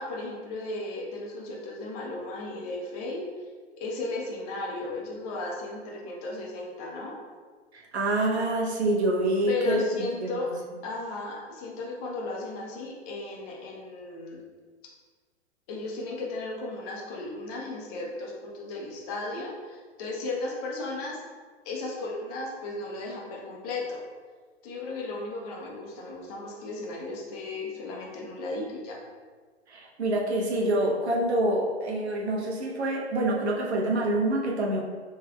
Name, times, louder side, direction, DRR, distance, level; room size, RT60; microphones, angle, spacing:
voice 1, 0.0-3.2 3.8-7.2 9.5-10.5 10.8-14.4 15.7-21.2 21.6-24.0 24.6-29.0, left 2 dB, 35° left, -2 dB, 1.0 m, -35 dB
voice 2, 7.7-9.8 10.2-10.3 29.7-34.8, right 1 dB, 70° right, -1 dB, 1.0 m, -26 dB
5.4 x 3.2 x 2.3 m, 1.5 s
figure-of-eight pair, 115°, 34 cm